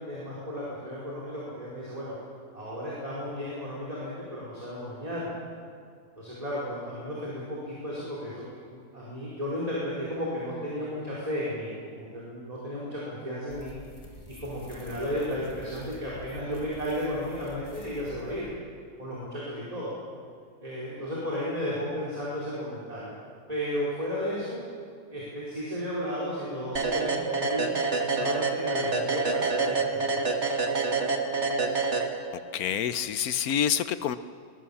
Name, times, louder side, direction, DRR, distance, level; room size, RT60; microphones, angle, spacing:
voice 1, 0.0-2.2 2.5-5.3 6.2-13.7 14.4-18.5 19.0-19.9 20.6-23.1 23.5-24.6 25.1-27.8 28.1-30.3, equal, 25° right, -7 dB, 4.9 m, -34 dB
sound 1, 13.5-18.6, left 1 dB, 20° left, 2.4 m, -48 dB
sound 2, 26.8-32.6, right 4 dB, 50° right, 2.0 m, -27 dB
voice 2, 32.5-34.2, left 9 dB, 90° left, 12 dB, 1.3 m, -27 dB
23.0 x 21.5 x 7.3 m, 2.2 s
omnidirectional pair, 1.5 m